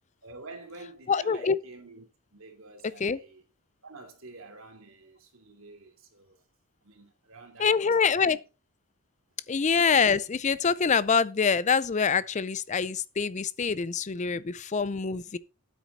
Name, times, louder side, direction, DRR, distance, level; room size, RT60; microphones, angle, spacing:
voice 1, 0.2-2.1 2.3-3.4 3.8-6.4 6.8-8.4, right 3 dB, 65° right, 2.8 m, -48 dB
voice 2, 1.1-1.6 3.0-3.2 7.6-8.4 9.5-15.4, left 5 dB, 35° left, 0.5 m, -25 dB
9.2 x 8.3 x 4.1 m
head